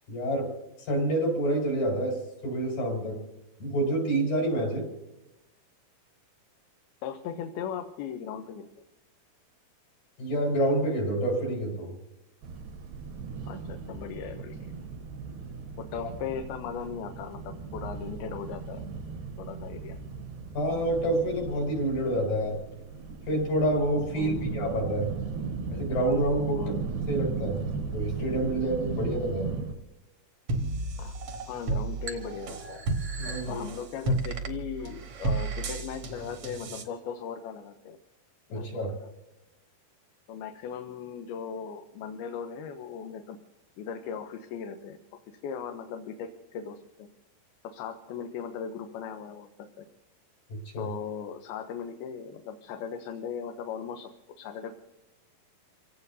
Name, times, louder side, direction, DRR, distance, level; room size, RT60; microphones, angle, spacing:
voice 1, 0.1-0.5 0.8-3.2 3.6-4.9 10.2-11.9 20.5-22.6 23.3-25.1 25.7-26.6 27.1-29.5 33.2-33.6 38.5-38.9 50.5-50.9, right 1 dB, 65° left, -2 dB, 6.5 m, -28 dB
voice 2, 7.0-8.7 13.4-14.8 15.8-18.9 19.4-20.0 24.1-24.5 26.5-26.9 31.0-31.2 31.5-32.9 33.2-38.0 38.5-39.1 40.3-43.4 43.8-45.0 45.3-47.1 47.6-49.9 50.8-54.8, left 7 dB, 80° left, 5 dB, 2.7 m, -38 dB
sound 1, 12.4-29.8, right 5 dB, 85° right, 3.1 m, -37 dB
sound 2, 30.5-36.8, right 2 dB, 60° right, 1.7 m, -32 dB
29.0 x 17.0 x 2.7 m, 0.93 s
omnidirectional pair, 4.4 m